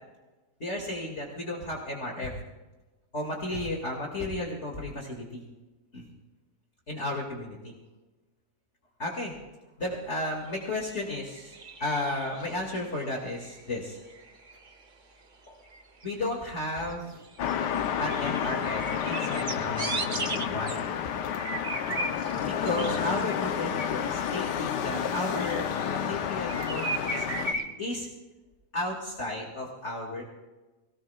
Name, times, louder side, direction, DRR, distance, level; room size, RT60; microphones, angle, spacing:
voice 1, 0.6-2.3 3.1-5.4 5.9-6.1 6.9-7.7 9.0-9.3 9.8-14.0 15.5-15.6 16.0-17.2 18.0-20.8 22.4-28.1 28.7-30.2, left 1 dB, 45° left, -1 dB, 2.5 m, -34 dB
sound 1, 10.4-10.6 11.4-12.6 13.0-13.8 14.1-14.8 15.6-16.6 16.9-17.5 17.8-20.8 21.4-22.5 22.8-26.1 26.5-27.7, right 3 dB, 35° right, 1.0 m, -37 dB
sound 2, 17.4-27.5, left 8 dB, 85° left, 1.4 m, -30 dB
24.0 x 18.0 x 2.4 m, 1.1 s
omnidirectional pair, 1.8 m